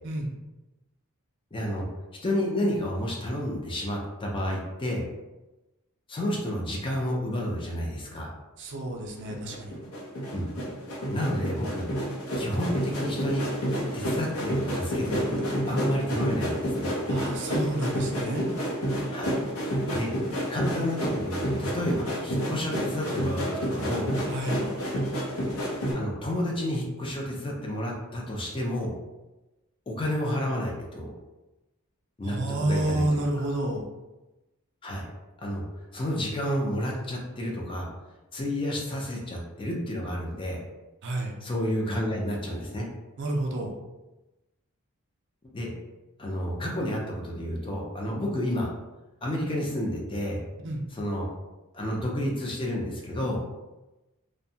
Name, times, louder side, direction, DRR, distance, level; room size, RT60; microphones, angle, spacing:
voice 1, 1.5-1.9 2.2-5.0 6.1-8.3 10.3-10.5 11.1-11.9 12.4-13.4 13.9-16.9 19.1-19.3 19.9-20.1 20.5-24.1 25.9-28.9 29.9-31.1 32.2-33.3 34.8-35.1 35.4-35.6 35.9-37.9 38.3-40.6 41.4-42.9 45.5-45.7 46.2-48.7 49.2-50.4 50.9-51.3 51.7-53.4, equal, 25° left, -2 dB, 0.4 m, -30 dB
voice 2, 8.6-9.7 17.1-18.4 24.3-24.6 32.2-33.8 41.0-41.3 43.2-43.7 50.6-50.8, right 1 dB, 55° right, 1 dB, 0.4 m, -29 dB
sound 1, 9.2-25.9, equal, 65° left, 0.6 m, -30 dB
2.6 x 2.1 x 2.7 m, 1.0 s
head